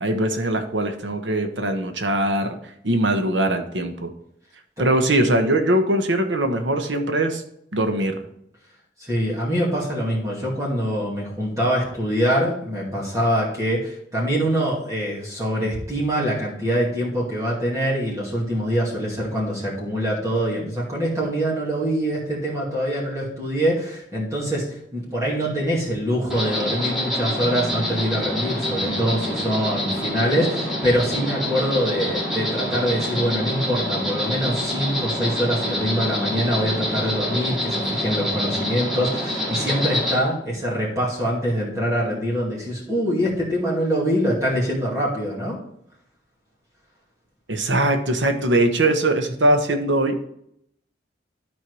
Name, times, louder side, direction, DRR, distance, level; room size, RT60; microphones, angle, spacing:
voice 1, 0.0-2.6 2.8-4.1 4.8-7.4 7.7-8.2 47.5-50.2, right 1 dB, 90° right, 6 dB, 1.1 m, -21 dB
voice 2, 9.0-45.6, equal, 20° right, -5 dB, 2.4 m, -24 dB
Insect, 26.3-40.2, left 1 dB, ahead, 2.1 m, -26 dB
sound 1, 27.4-39.4, right 2 dB, 25° left, 1.8 m, -39 dB
11.5 x 4.6 x 4.8 m, 0.72 s
head